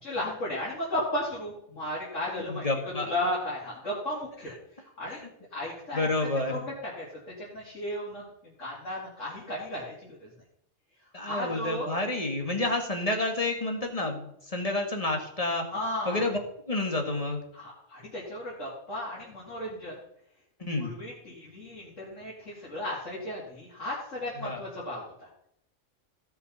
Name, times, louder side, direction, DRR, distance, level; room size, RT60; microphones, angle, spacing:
voice 1, 0.0-5.2 5.5-7.1 7.4-8.2 8.6-10.3 11.2-11.9 15.7-16.2 17.5-20.0 20.8-25.3, left 1 dB, 75° left, -6 dB, 3.2 m, -35 dB
voice 2, 2.4-3.1 5.1-5.2 5.9-6.6 11.1-15.6 16.1-16.4 16.7-17.4 20.6-20.9 24.4-24.6, left 2 dB, 30° left, 3 dB, 1.8 m, -29 dB
16.0 x 5.8 x 5.7 m, 0.74 s
omnidirectional pair, 1.3 m